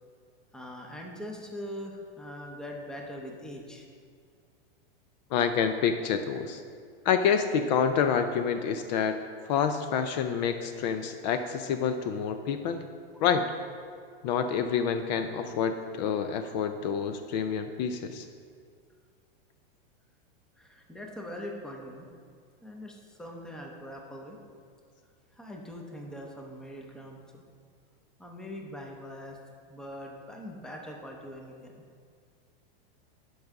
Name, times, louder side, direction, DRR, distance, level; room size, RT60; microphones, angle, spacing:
voice 1, 0.5-3.9 20.6-22.1 22.6-24.4 25.3-27.4 28.2-29.4 29.7-31.7, equal, ahead, 0 dB, 0.6 m, -42 dB
voice 2, 5.3-6.6 7.0-9.2 9.5-12.9 13.2-13.5 14.2-18.3, left 7 dB, 50° left, 8 dB, 0.5 m, -28 dB
11.5 x 4.7 x 3.6 m, 2.2 s
supercardioid pair, 145°, 30 cm